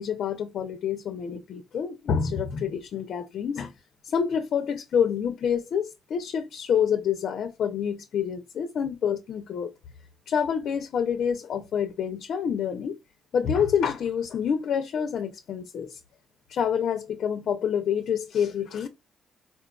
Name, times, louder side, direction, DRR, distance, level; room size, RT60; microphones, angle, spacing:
voice 1, 0.0-3.7 4.0-9.7 10.3-13.0 13.3-16.0 16.5-18.9, left 7 dB, 65° left, 0.5 m, -27 dB
4.3 x 2.2 x 2.3 m
cardioid pair, 90°, 0 cm